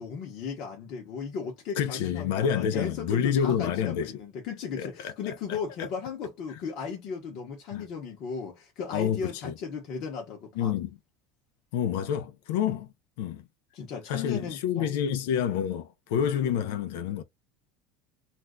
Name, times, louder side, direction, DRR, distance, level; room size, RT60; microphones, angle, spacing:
voice 1, 0.0-10.7 13.7-14.9, left 6 dB, 45° left, 0.9 m, -36 dB
voice 2, 1.8-4.2 4.8-5.9 7.7-7.9 8.9-9.5 10.6-11.0 11.7-12.9 13.2-13.5 14.1-17.2, left 8 dB, 80° left, 0.5 m, -28 dB
2.5 x 2.2 x 3.6 m
cardioid pair, 165°, 0 cm